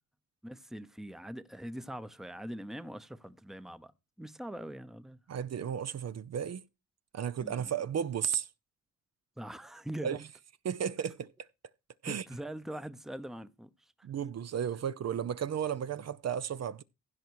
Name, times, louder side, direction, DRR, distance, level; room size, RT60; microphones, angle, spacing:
voice 1, 0.4-3.9 4.2-5.2 7.4-7.7 9.4-10.2 12.1-13.7, right 1 dB, ahead, 0.7 m, -42 dB
voice 2, 5.3-6.6 7.1-8.5 10.0-10.2 10.6-11.3 12.0-12.2 14.0-16.8, right 8 dB, 60° right, 0.6 m, -34 dB
16.0 x 5.7 x 4.7 m
wide cardioid pair, 120°, 29 cm